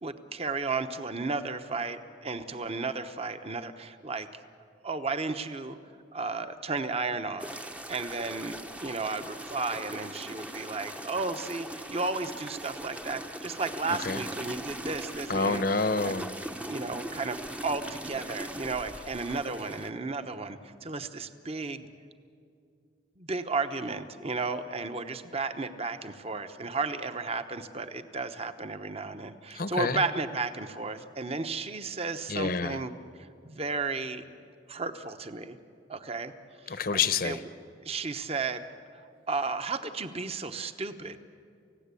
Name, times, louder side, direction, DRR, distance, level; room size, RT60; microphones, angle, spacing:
voice 1, 0.0-4.3 4.8-5.8 6.1-7.6 7.9-15.6 16.0-16.1 16.7-21.9 23.2-32.9 33.2-34.2 34.7-35.6 35.9-36.3 36.6-36.8 37.2-37.4 37.8-38.6 39.3-41.2, right 3 dB, 30° right, 9 dB, 1.0 m, -33 dB
sound 1, 7.4-19.9, right 1 dB, 5° right, 0.8 m, -40 dB
voice 2, 13.9-14.2 15.3-16.3 29.5-30.0 32.3-32.8 36.7-37.4, left 4 dB, 50° left, 12 dB, 0.9 m, -28 dB
29.5 x 16.0 x 8.4 m, 2.4 s
head